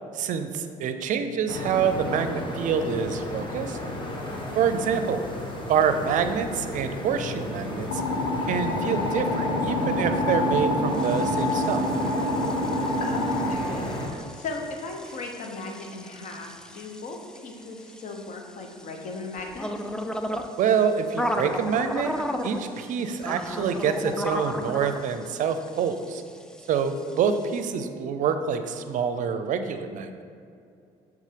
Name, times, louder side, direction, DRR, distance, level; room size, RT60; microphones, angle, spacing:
voice 1, 0.1-3.8 4.5-5.4 5.7-8.0 8.5-11.8 20.6-22.1 22.4-26.2 26.7-30.2, right 7 dB, 60° right, 9 dB, 0.5 m, -26 dB
sound 1, 1.5-14.1, left 1 dB, 35° left, 1.2 m, -32 dB
sound 2, 7.9-13.5, left 1 dB, 85° left, 0.8 m, -27 dB
sound 3, 10.9-27.6, left 1 dB, 5° left, 0.4 m, -36 dB
voice 2, 13.0-17.2 17.4-19.9, left 3 dB, 55° left, 3 dB, 1.0 m, -37 dB
6.6 x 3.5 x 5.0 m, 2.5 s
supercardioid pair, 80°, 15 cm